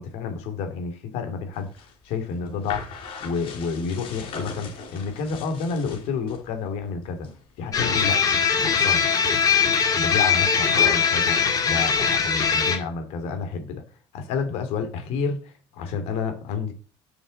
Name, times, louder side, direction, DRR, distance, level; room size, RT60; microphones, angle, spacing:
voice 1, 0.0-1.7 2.0-2.9 3.2-7.3 7.6-8.2 8.5-9.1 10.0-13.8 14.1-16.7, left 5 dB, 80° left, 3.2 m, -30 dB
sound 1, 1.5-6.4 6.8-7.4 7.6-8.1 8.6-12.5, left 4 dB, 60° left, 4.5 m, -39 dB
sound 2, 7.7-12.8, left 6 dB, 35° left, 2.2 m, -21 dB
7.2 x 7.0 x 7.9 m
cardioid pair, 135°, 11 cm